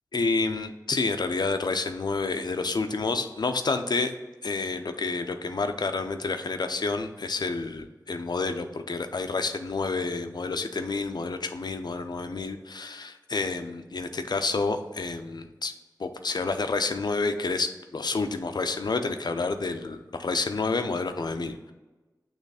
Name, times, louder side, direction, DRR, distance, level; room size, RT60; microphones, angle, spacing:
voice 1, 0.1-4.1 4.4-15.7 16.0-21.7, left 3 dB, 75° left, 7 dB, 0.5 m, -29 dB
6.6 x 3.1 x 4.8 m, 1.1 s
wide cardioid pair, 50°, 7 cm